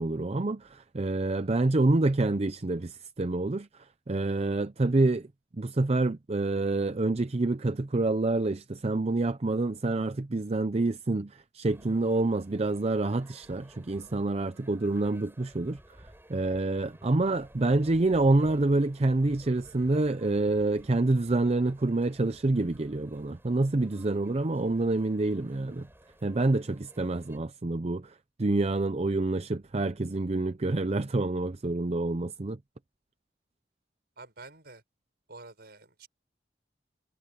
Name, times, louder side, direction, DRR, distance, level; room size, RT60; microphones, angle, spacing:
voice 1, 0.0-3.7 4.1-5.3 5.6-15.8 16.3-25.9 26.2-32.6, right 2 dB, 35° right, 0.6 m, -27 dB
sound 1, 11.6-27.4, right 1 dB, 15° right, 5.6 m, -56 dB
voice 2, 34.2-34.8 35.3-36.1, right 3 dB, 65° right, 5.9 m, -48 dB
head